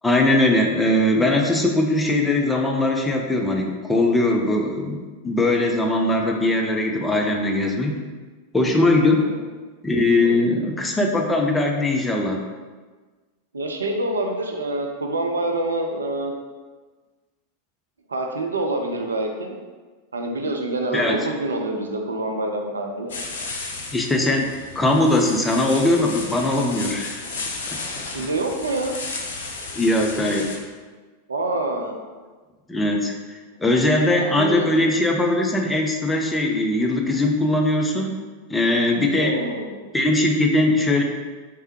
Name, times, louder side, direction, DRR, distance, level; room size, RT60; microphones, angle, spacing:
voice 1, 0.0-8.0 8.5-9.2 9.8-12.4 20.9-21.2 23.9-24.5 24.8-27.2 29.7-30.6 32.7-38.1 38.5-39.4 39.9-41.0, left 2 dB, 10° left, 1 dB, 0.4 m, -20 dB
voice 2, 9.0-9.4 10.2-10.5 13.5-16.3 18.1-19.6 20.1-23.2 28.0-29.0 31.3-32.0 33.9-34.8 39.1-39.8, right 2 dB, 75° right, 3 dB, 0.4 m, -26 dB
sound 1, 23.1-30.6, left 3 dB, 60° left, 0.5 m, -33 dB
3.3 x 3.2 x 3.1 m, 1.4 s
figure-of-eight pair, 90°, 0 cm